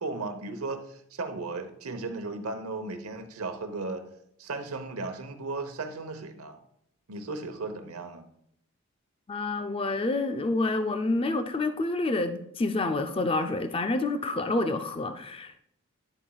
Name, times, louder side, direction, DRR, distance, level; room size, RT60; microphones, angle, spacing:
voice 1, 0.0-4.0 4.4-6.6 7.1-8.2, right 3 dB, 75° right, 7 dB, 0.9 m, -35 dB
voice 2, 9.3-15.6, left 2 dB, 25° left, 8 dB, 0.4 m, -28 dB
10.0 x 7.2 x 2.3 m, 0.73 s
head